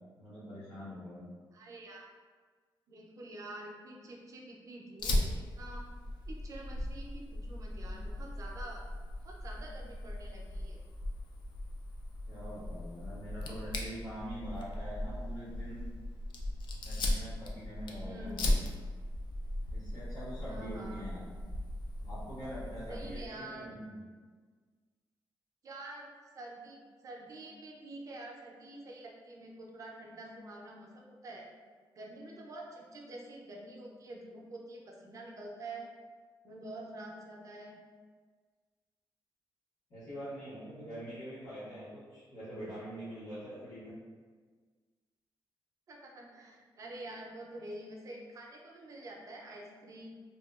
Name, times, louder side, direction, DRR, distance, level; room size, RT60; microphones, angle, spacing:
voice 1, 0.2-1.3 12.3-15.8 16.8-18.6 19.7-21.2 22.0-23.9 39.9-43.9, equal, 50° left, -10 dB, 0.8 m, -44 dB
voice 2, 1.5-2.1 2.9-5.9 6.3-8.8 9.2-10.8 18.0-18.5 20.5-21.0 22.9-23.7 25.6-26.1 26.3-31.5 31.9-35.9 36.4-37.8 45.9-50.1, right 2 dB, 40° right, -1 dB, 0.4 m, -47 dB
Fire, 5.0-23.3, left 1 dB, 65° left, 0.3 m, -38 dB
2.7 x 2.2 x 2.3 m, 1.5 s
wide cardioid pair, 160°, 8 cm